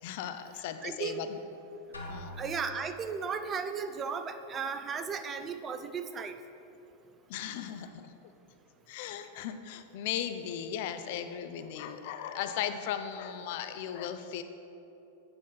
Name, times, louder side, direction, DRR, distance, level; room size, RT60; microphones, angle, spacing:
voice 1, 0.0-1.4 2.1-2.3 7.3-8.2 8.9-14.4, left 9 dB, 50° left, 9 dB, 0.5 m, -37 dB
voice 2, 0.8-1.2 2.4-6.3, right 6 dB, 25° right, 9 dB, 0.5 m, -35 dB
Drum, 1.9-3.1, left 1 dB, 80° left, 1.3 m, -43 dB
8.7 x 6.1 x 5.5 m, 3.0 s
figure-of-eight pair, 90°, 0 cm